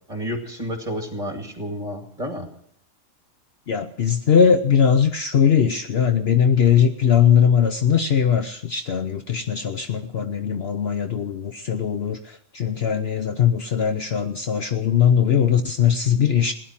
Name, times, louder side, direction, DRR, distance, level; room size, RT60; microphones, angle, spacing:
voice 1, 0.1-2.5, equal, 25° right, 3 dB, 2.4 m, -30 dB
voice 2, 3.7-16.5, left 8 dB, 55° left, 8 dB, 0.9 m, -20 dB
17.0 x 10.5 x 7.3 m, 0.70 s
omnidirectional pair, 1.4 m